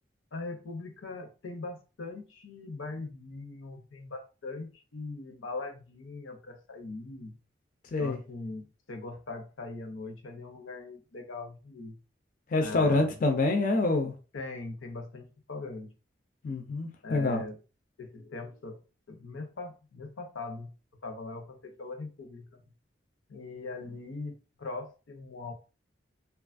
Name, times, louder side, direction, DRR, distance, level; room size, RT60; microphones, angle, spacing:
voice 1, 0.3-7.4 8.0-12.0 12.6-13.1 14.3-15.9 16.5-16.6 17.0-17.6 18.0-18.8 19.1-20.7 21.0-22.6 23.3-25.5, left 3 dB, 90° left, 0.7 m, -41 dB
voice 2, 12.5-14.1 16.4-17.4, left 2 dB, 45° left, 0.4 m, -26 dB
2.8 x 2.3 x 2.4 m
head